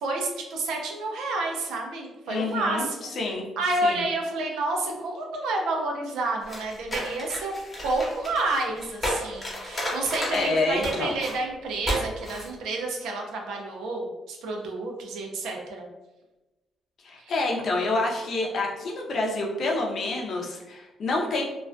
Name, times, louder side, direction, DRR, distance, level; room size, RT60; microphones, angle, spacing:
voice 1, 0.0-3.1 3.6-15.9 17.2-17.3, right 2 dB, 85° right, 1 dB, 0.5 m, -29 dB
voice 2, 2.3-2.9 3.2-3.5 3.8-4.0 10.3-11.2 17.0-21.4, left 2 dB, 60° left, 0 dB, 0.5 m, -27 dB
sound 1, 6.4-10.5 10.8-11.3 11.8-12.0 12.2-12.5, equal, 25° left, 0.8 m, -32 dB
2.3 x 2.2 x 2.4 m, 1.1 s
cardioid pair, 90°, 0 cm